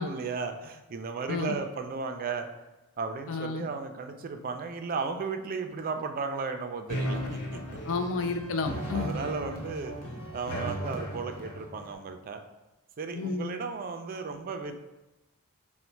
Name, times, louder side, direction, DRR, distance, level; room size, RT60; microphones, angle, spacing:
voice 1, 0.0-2.5 3.0-7.6 8.9-9.9 10.3-12.4 13.0-14.7, right 4 dB, 40° right, 6 dB, 0.3 m, -35 dB
voice 2, 1.3-1.6 3.3-3.7 7.8-9.1 13.1-13.5, left 4 dB, 60° left, 8 dB, 0.4 m, -31 dB
sound 1, 6.9-11.9, equal, 75° left, 0.8 m, -36 dB
4.0 x 2.1 x 4.4 m, 1.0 s
head